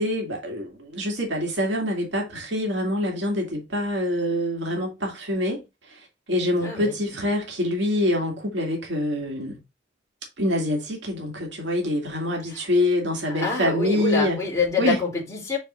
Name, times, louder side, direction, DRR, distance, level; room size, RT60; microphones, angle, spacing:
voice 1, 0.0-9.6 10.4-14.4 14.8-15.0, left 1 dB, 90° right, 2.3 m, -25 dB
voice 2, 6.6-7.3 12.5-12.7 13.3-15.6, left 4 dB, 20° left, 3.3 m, -27 dB
6.8 x 5.3 x 2.6 m
head